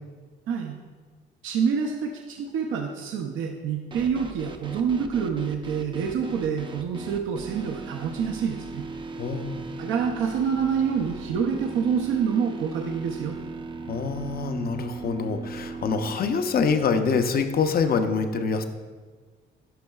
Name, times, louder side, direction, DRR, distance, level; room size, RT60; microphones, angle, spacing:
voice 1, 0.5-0.8 1.4-8.9 9.8-13.3, right 6 dB, 80° right, 2 dB, 0.6 m, -27 dB
sound 1, 3.9-16.2, right 3 dB, 25° right, 0.5 m, -38 dB
voice 2, 9.1-9.6 13.9-18.6, left 5 dB, 50° left, 8 dB, 0.6 m, -25 dB
10.0 x 5.3 x 2.3 m, 1.5 s
cardioid pair, 90°, 20 cm